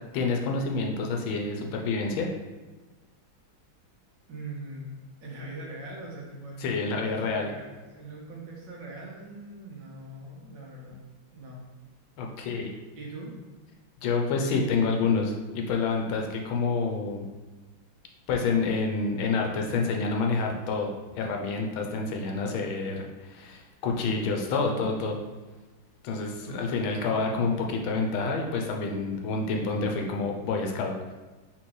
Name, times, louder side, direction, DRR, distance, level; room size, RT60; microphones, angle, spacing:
voice 1, 0.1-2.3 6.6-7.5 12.2-12.7 14.0-17.3 18.3-20.9 21.2-25.2 26.0-30.9, left 4 dB, 80° left, 1 dB, 1.4 m, -28 dB
voice 2, 4.3-4.9 5.2-11.0 11.3-11.6 12.5-13.3 26.4-26.6 27.0-27.2, right 2 dB, 65° right, -3 dB, 1.5 m, -42 dB
4.3 x 3.8 x 3.1 m, 1.2 s
omnidirectional pair, 2.3 m